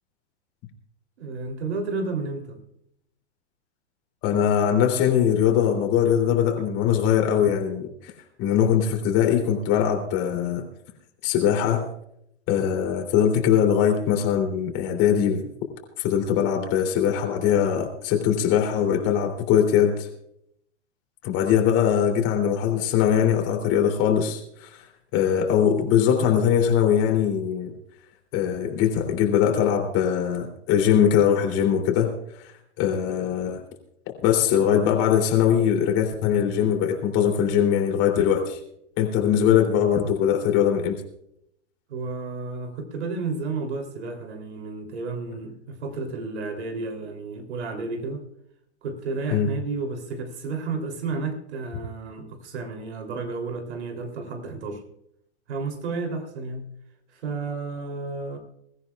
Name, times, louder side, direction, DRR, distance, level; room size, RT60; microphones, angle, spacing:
voice 1, 1.2-2.6 41.9-48.2 48.8-54.8 55.5-56.7 57.1-58.4, right 3 dB, 70° right, 5 dB, 3.4 m, -32 dB
voice 2, 4.2-8.1 8.4-10.6 11.2-11.9 12.5-15.5 16.0-20.1 21.2-24.8 25.1-27.7 28.3-32.1 32.4-33.6 34.2-38.6 39.0-41.0 49.3-49.5, left 9 dB, 40° left, 3 dB, 3.2 m, -21 dB
23.5 x 14.0 x 2.4 m, 0.75 s
hypercardioid pair, 120°, 35 cm